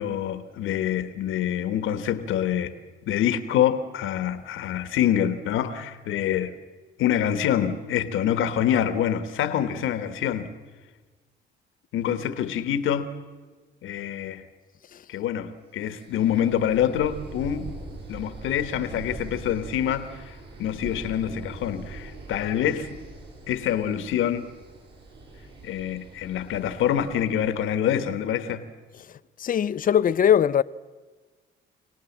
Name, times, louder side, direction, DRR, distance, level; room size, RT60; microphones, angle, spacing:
voice 1, 0.0-2.7 3.1-6.5 7.0-10.5 11.9-13.1 13.8-14.4 15.1-17.7 18.1-20.3 20.6-22.9 23.5-24.5 25.6-28.6, left 10 dB, 85° left, 1.4 m, -26 dB
sound 1, 15.9-27.7, right 3 dB, 60° right, 7.7 m, -42 dB
voice 2, 29.4-30.6, left 9 dB, 45° left, 0.6 m, -20 dB
26.0 x 18.0 x 7.3 m
cardioid pair, 90°, 20 cm